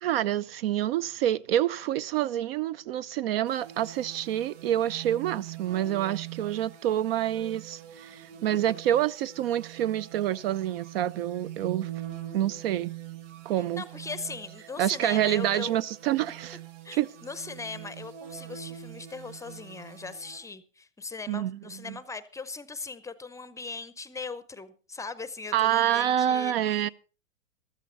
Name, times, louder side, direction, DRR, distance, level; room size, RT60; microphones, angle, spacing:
voice 1, 0.0-11.9 12.3-12.9 13.4-13.8 14.8-16.6 16.9-17.1 21.3-22.0 25.5-26.9, right 12 dB, 50° right, 0.6 m, -27 dB
sound 1, 3.4-20.4, right 11 dB, 65° right, 5.3 m, -43 dB
voice 2, 13.8-15.7 16.8-26.5, left 4 dB, 10° left, 0.7 m, -39 dB
15.0 x 13.0 x 3.9 m
hypercardioid pair, 110°, 39 cm